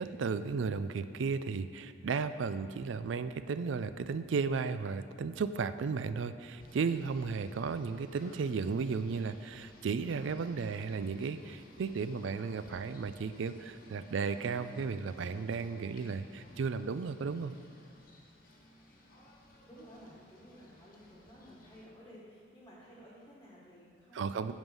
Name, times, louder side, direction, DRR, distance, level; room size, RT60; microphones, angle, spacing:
voice 1, 0.0-17.5 24.1-24.5, right 5 dB, 80° right, 12 dB, 0.4 m, -34 dB
Singing / Bird, 6.6-21.8, left 1 dB, 45° left, 1.3 m, -57 dB
voice 2, 19.7-24.5, equal, 15° left, -7 dB, 1.3 m, -54 dB
9.0 x 5.5 x 5.5 m, 2.1 s
head